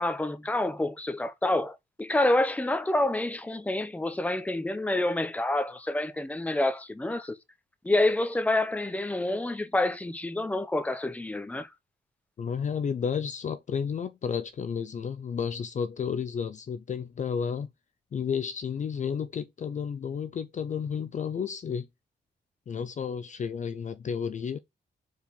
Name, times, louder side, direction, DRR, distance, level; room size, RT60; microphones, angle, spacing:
voice 1, 0.0-7.3 7.8-11.7, left 2 dB, 10° left, 0.7 m, -28 dB
voice 2, 12.4-17.7 18.1-21.9 22.7-24.6, left 7 dB, 45° left, 0.5 m, -32 dB
4.7 x 4.4 x 5.1 m
wide cardioid pair, 140°, 18 cm